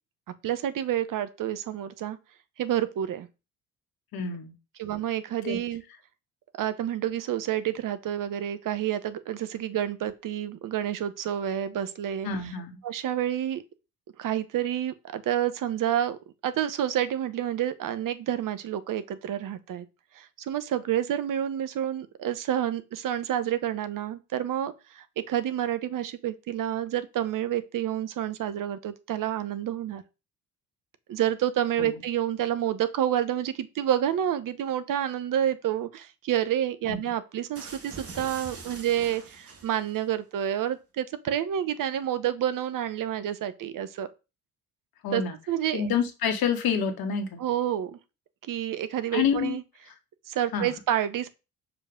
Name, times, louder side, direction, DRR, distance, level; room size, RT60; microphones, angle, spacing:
voice 1, 0.4-2.2 2.6-3.3 4.8-5.8 6.6-12.5 12.8-13.6 14.2-16.2 16.4-19.9 20.1-30.0 31.1-44.1 45.1-45.2 45.5-45.9 47.4-48.0 48.5-49.6 50.3-51.3, right 11 dB, 45° right, 1.0 m, -29 dB
voice 2, 4.1-4.5 5.4-5.6 12.2-12.8 31.8-31.9 36.9-37.1 45.0-45.4 45.7-47.4 49.1-49.6 50.5-50.7, left 6 dB, 55° left, 1.8 m, -28 dB
sound 1, 37.5-40.0, right 4 dB, 30° right, 1.8 m, -43 dB
6.7 x 4.9 x 3.6 m
figure-of-eight pair, 50°, 44 cm